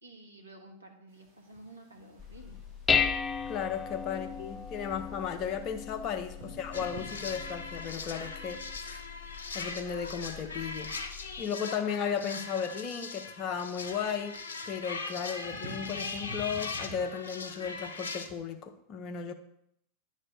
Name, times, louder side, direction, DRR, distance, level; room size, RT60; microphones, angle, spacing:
voice 1, 0.0-2.6 4.1-5.1 6.4-6.6, right 1 dB, 80° right, 2 dB, 1.2 m, -52 dB
sound 1, 1.1-18.4, right 1 dB, 65° right, 2.7 m, -53 dB
Dishes pots and pans, 2.2-11.4, left 6 dB, 15° left, 0.3 m, -36 dB
voice 2, 3.5-9.0 9.3-11.1 11.4-14.4 14.7-19.3, left 7 dB, 35° left, 7 dB, 0.7 m, -35 dB
sound 2, 6.7-18.3, left 4 dB, 65° left, 0.7 m, -40 dB
9.7 x 3.3 x 5.1 m, 0.74 s
figure-of-eight pair, 90°, 0 cm